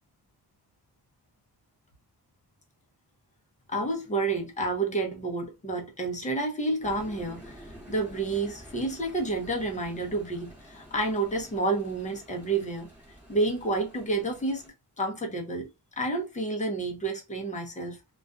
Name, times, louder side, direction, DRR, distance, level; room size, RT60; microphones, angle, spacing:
voice 1, 3.7-12.9 13.3-14.6 15.0-15.7 16.0-18.0, right 2 dB, 20° left, 0.7 m, -30 dB
sound 1, 6.8-14.7, equal, 5° right, 1.2 m, -49 dB
2.4 x 2.4 x 2.3 m
wide cardioid pair, 125°, 40 cm